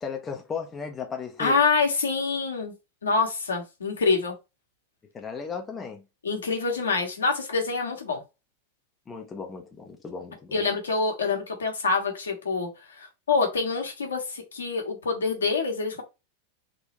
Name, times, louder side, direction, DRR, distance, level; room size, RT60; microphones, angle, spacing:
voice 1, 0.0-1.6 5.1-6.0 9.1-10.6, left 5 dB, 20° left, 0.6 m, -35 dB
voice 2, 1.4-2.7 3.0-4.3 6.2-8.2 10.5-12.7 13.0-16.0, left 4 dB, 70° left, 1.3 m, -26 dB
3.7 x 2.9 x 3.0 m
figure-of-eight pair, 90°, 0 cm